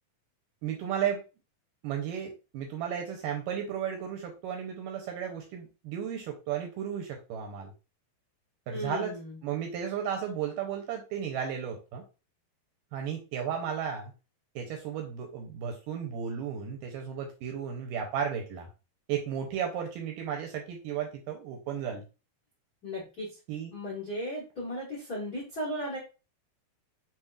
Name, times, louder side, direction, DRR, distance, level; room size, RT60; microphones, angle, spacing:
voice 1, 0.6-1.2 1.8-7.7 8.7-9.2 9.4-12.0 12.9-14.1 14.6-18.7 19.1-22.0 23.5-23.7, right 8 dB, 80° right, 2 dB, 2.1 m, -34 dB
voice 2, 8.7-9.4 22.8-23.4 23.7-26.0, equal, 65° left, -4 dB, 0.9 m, -36 dB
7.1 x 2.9 x 2.4 m, 0.31 s
omnidirectional pair, 4.4 m